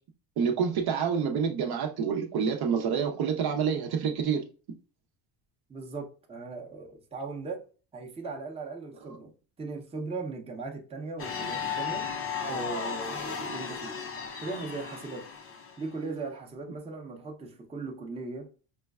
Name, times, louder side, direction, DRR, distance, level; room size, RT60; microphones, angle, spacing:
voice 1, 0.4-4.4, right 6 dB, 50° right, 0.7 m, -27 dB
voice 2, 5.7-7.6 7.9-9.3 9.6-12.1 12.5-14.0 14.4-15.3 15.8-18.5, right 3 dB, 10° right, 0.7 m, -38 dB
sound 1, 11.2-15.9, left 6 dB, 30° left, 0.6 m, -35 dB
5.1 x 2.2 x 2.3 m
cardioid pair, 110°, 49 cm